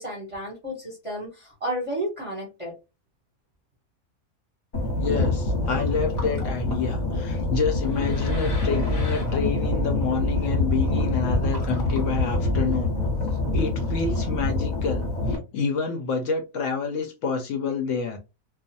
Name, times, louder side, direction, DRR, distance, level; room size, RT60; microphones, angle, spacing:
voice 1, 0.0-2.7, right 1 dB, 25° right, 0.8 m, -32 dB
sound 1, 4.7-15.4, left 2 dB, 35° left, 0.9 m, -25 dB
voice 2, 5.0-12.9 13.3-18.2, left 5 dB, 65° left, 0.8 m, -28 dB
2.4 x 2.4 x 2.6 m
omnidirectional pair, 1.6 m